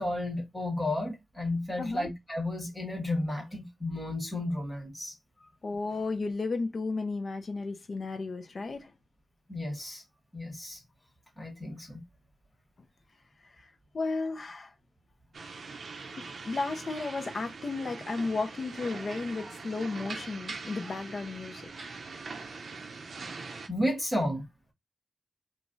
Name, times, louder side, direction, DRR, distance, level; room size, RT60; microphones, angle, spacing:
voice 1, 0.0-5.1 9.5-10.0 10.3-10.8 11.4-12.0 23.7-24.4, left 1 dB, 10° left, 1.6 m, -32 dB
voice 2, 1.8-2.1 5.6-8.9 13.4-14.7 16.2-22.0, left 3 dB, 50° left, 0.6 m, -34 dB
sound 1, 15.3-23.7, right 4 dB, 65° right, 0.6 m, -42 dB
3.1 x 2.5 x 3.8 m
wide cardioid pair, 150°, 0 cm